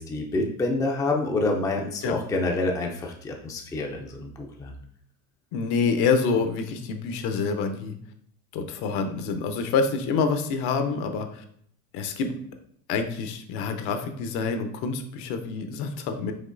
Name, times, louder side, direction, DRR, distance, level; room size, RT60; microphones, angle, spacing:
voice 1, 0.0-4.7, left 2 dB, 10° left, 1 dB, 0.4 m, -27 dB
voice 2, 5.5-8.0 8.5-11.4 11.9-12.3 12.9-16.3, left 5 dB, 55° left, 7 dB, 0.8 m, -27 dB
5.2 x 3.0 x 2.5 m, 0.63 s
supercardioid pair, 100°, 46 cm